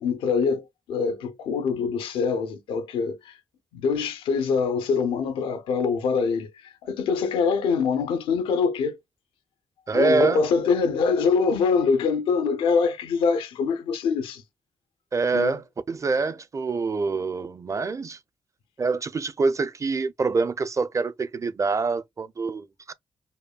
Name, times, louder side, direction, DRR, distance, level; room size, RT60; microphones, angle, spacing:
voice 1, 0.0-3.3 3.7-9.0 9.9-14.4 15.3-15.5, left 5 dB, 90° left, 0.6 m, -24 dB
voice 2, 9.9-10.4 15.1-18.2 18.8-22.9, right 4 dB, 35° right, 0.6 m, -25 dB
5.2 x 2.2 x 2.3 m
supercardioid pair, 55°, 9 cm